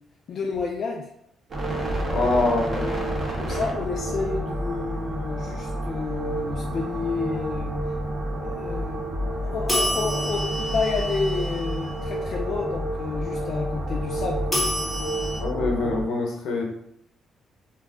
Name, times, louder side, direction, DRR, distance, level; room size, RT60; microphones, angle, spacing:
voice 1, 0.3-1.1 2.1-2.3 2.6-3.1 3.4-7.7 8.4-9.1 9.4-14.6, left 4 dB, 55° left, -1 dB, 0.3 m, -30 dB
sound 1, 1.5-16.0, right 1 dB, 40° right, 0.7 m, -29 dB
voice 2, 2.1-2.8 15.4-16.6, left 2 dB, 80° left, 0 dB, 0.7 m, -24 dB
sound 2, 9.7-11.9 14.5-15.4, equal, 10° left, 1.0 m, -28 dB
2.3 x 2.1 x 3.5 m, 0.75 s
cardioid pair, 90°, 0 cm